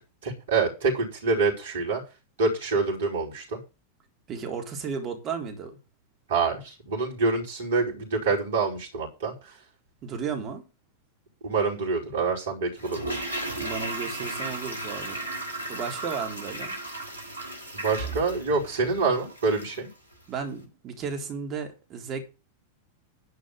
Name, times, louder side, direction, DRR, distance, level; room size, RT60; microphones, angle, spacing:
voice 1, 0.2-2.0 2.4-3.6 6.3-9.5 11.4-13.2 17.7-19.9, right 4 dB, 60° right, 5.2 m, -26 dB
voice 2, 4.3-5.8 10.0-10.6 13.6-15.2 15.7-16.7 18.1-18.2 20.3-22.2, right 6 dB, 35° right, 3.8 m, -34 dB
Toilet flush, 12.8-19.9 20.1-20.2, right 2 dB, 85° right, 3.1 m, -35 dB
11.5 x 5.2 x 8.6 m
figure-of-eight pair, 90°, 0 cm